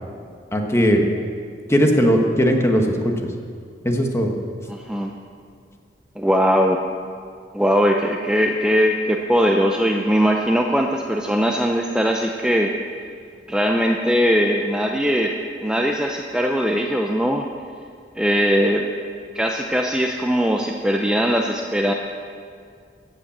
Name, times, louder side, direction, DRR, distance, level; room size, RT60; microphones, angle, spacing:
voice 1, 0.5-1.0 1.7-3.1 3.8-4.3, equal, 15° left, 2 dB, 1.5 m, -18 dB
voice 2, 4.7-5.1 6.2-6.8 7.5-12.7 13.5-15.3 15.6-17.5 18.2-18.9 19.3-21.9, equal, 5° right, 1 dB, 0.7 m, -20 dB
16.0 x 9.0 x 7.3 m, 2.2 s
head